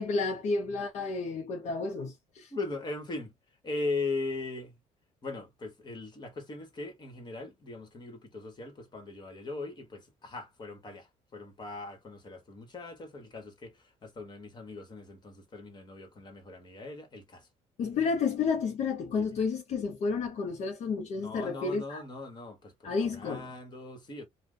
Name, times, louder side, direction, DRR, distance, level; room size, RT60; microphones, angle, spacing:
voice 1, 0.0-2.5 17.8-22.0 22.8-23.5, left 4 dB, 60° left, 0.7 m, -31 dB
voice 2, 2.5-3.3 3.6-4.8 5.2-17.5 19.1-19.4 21.2-24.2, left 3 dB, 35° left, 1.3 m, -39 dB
2.6 x 2.3 x 3.7 m
cardioid pair, 110°, 13 cm